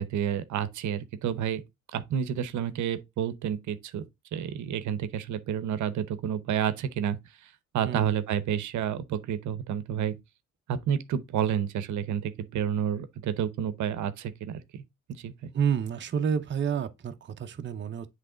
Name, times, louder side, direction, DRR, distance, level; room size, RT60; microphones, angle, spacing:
voice 1, 0.0-1.6 1.9-4.0 4.3-10.2 10.7-14.8 15.1-15.5, right 9 dB, 70° right, 0.8 m, -30 dB
voice 2, 15.5-18.1, right 7 dB, 40° right, 0.7 m, -29 dB
7.6 x 3.3 x 3.8 m
cardioid pair, 90°, 30 cm